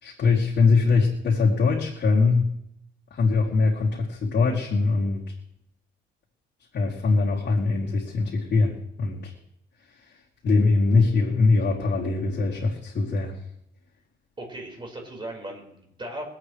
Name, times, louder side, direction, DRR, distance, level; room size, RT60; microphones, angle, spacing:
voice 1, 0.0-2.5 3.1-5.3 6.7-9.3 10.0-10.1 10.4-13.4, left 4 dB, 60° left, -6 dB, 2.9 m, -22 dB
voice 2, 14.4-16.2, right 1 dB, 25° right, 1 dB, 4.9 m, -37 dB
24.0 x 8.6 x 3.3 m, 0.76 s
cardioid pair, 90°, 20 cm